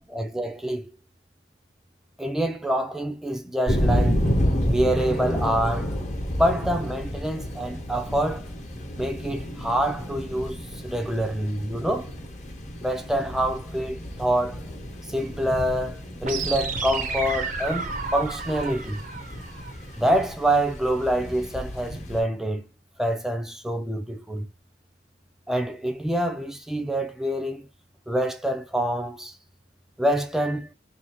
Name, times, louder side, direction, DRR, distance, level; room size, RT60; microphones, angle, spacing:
voice 1, 0.1-0.8 2.2-4.2 4.6-6.0 6.4-8.5 9.0-10.6 10.8-12.1 12.8-14.6 15.1-19.0 20.0-22.6 23.0-24.5 25.5-27.7 28.1-29.3 30.0-30.7, right 1 dB, 5° right, 0.5 m, -26 dB
sound 1, 3.7-22.2, equal, 40° left, 1.1 m, -30 dB
sound 2, 16.2-20.2, right 4 dB, 45° right, 0.6 m, -32 dB
2.8 x 2.8 x 4.3 m
head